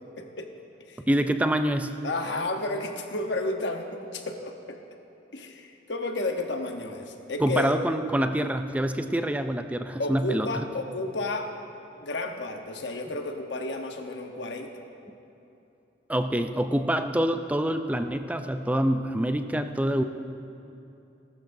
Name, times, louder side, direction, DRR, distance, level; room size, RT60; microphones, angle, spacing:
voice 1, 0.2-0.5 0.9-1.0 2.0-4.8 5.3-7.7 10.0-11.5 12.0-14.7, left 2 dB, 65° left, 4 dB, 1.0 m, -32 dB
voice 2, 1.1-1.9 7.4-10.5 16.1-20.0, right 1 dB, 10° right, 8 dB, 0.4 m, -26 dB
18.5 x 12.5 x 2.7 m, 2.8 s
head